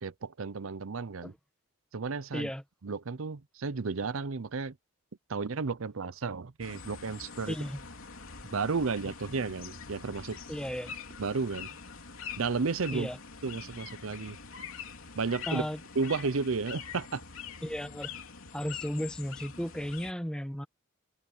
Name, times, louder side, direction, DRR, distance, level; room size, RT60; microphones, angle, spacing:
voice 1, 0.0-1.3 1.9-2.5 2.8-4.7 5.3-7.6 8.5-10.4 11.2-11.8 12.4-13.1 13.4-14.4 15.2-15.7 16.0-17.2, right 4 dB, 75° right, 0.7 m, -33 dB
voice 2, 2.3-2.6 7.5-7.8 10.5-10.9 12.9-13.2 15.5-15.8 17.6-18.1 18.5-20.7, equal, 5° left, 1.3 m, -34 dB
sound 1, 6.6-20.1, left 6 dB, 75° left, 3.2 m, -44 dB
head